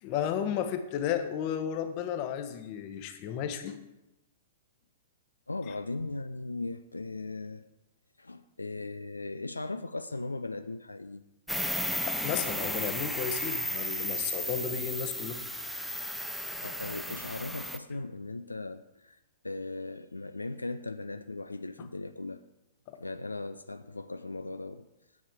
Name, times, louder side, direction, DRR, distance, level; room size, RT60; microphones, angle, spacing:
voice 1, 0.0-3.8 12.0-15.4 21.8-21.9 22.9-23.0, left 9 dB, 35° left, 8 dB, 1.0 m, -33 dB
voice 2, 5.5-7.6 8.2-11.2 16.6-22.4 23.0-24.9, left 2 dB, 80° left, 10 dB, 0.4 m, -38 dB
sound 1, 11.5-17.8, equal, ahead, 0.5 m, -34 dB
9.6 x 7.1 x 4.6 m, 0.94 s
figure-of-eight pair, 110°, 0 cm